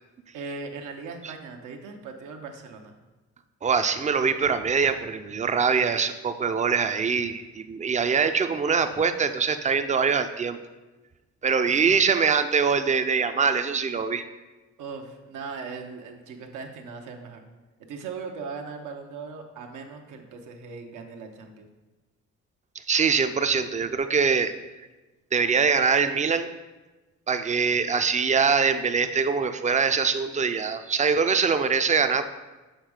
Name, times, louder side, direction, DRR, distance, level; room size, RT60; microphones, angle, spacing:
voice 1, 0.3-3.0 11.7-11.9 14.8-17.4 17.9-21.7, right 4 dB, 85° right, 3 dB, 0.8 m, -39 dB
voice 2, 3.6-10.6 11.4-14.2 22.9-24.5 25.3-26.5 27.3-32.3, right 5 dB, 25° right, 9 dB, 0.4 m, -23 dB
6.6 x 3.6 x 4.8 m, 1.2 s
cardioid pair, 90°, 30 cm